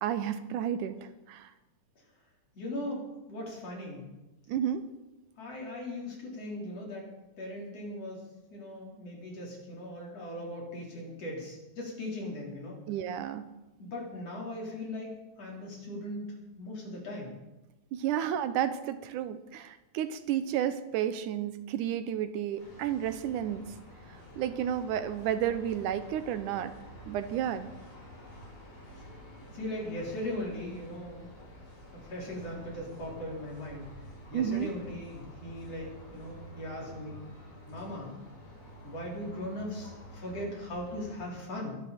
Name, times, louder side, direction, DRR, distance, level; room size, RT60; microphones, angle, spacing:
voice 1, 0.0-1.0 1.3-1.5 4.5-4.9 12.9-13.4 17.9-23.6 24.4-26.7 27.1-27.7 34.3-34.7, right 10 dB, 80° right, 11 dB, 2.3 m, -31 dB
voice 2, 2.5-4.1 5.4-8.2 8.5-12.8 13.8-16.2 16.5-17.3 29.0-29.1 29.5-31.3 31.9-33.9 34.3-37.2 37.7-38.1 38.8-41.8, left 1 dB, 50° left, -3 dB, 5.0 m, -39 dB
sound 1, 22.6-41.3, equal, 75° left, 7.8 m, -49 dB
22.5 x 12.0 x 4.3 m, 1.0 s
omnidirectional pair, 3.6 m